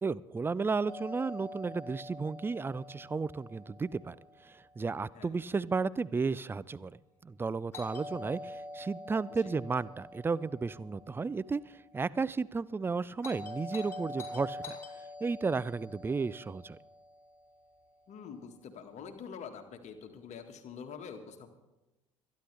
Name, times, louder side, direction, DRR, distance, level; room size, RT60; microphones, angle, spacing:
voice 1, 0.0-4.2 4.4-14.8 15.2-16.8, right 4 dB, 15° right, 20 dB, 0.4 m, -33 dB
Doorbell, 0.9-4.9 7.7-11.9 13.2-17.6, left 1 dB, 15° left, 5.4 m, -46 dB
voice 2, 18.1-21.5, left 6 dB, 45° left, 5 dB, 1.7 m, -46 dB
25.5 x 10.5 x 3.4 m, 1.0 s
figure-of-eight pair, 60°, 17 cm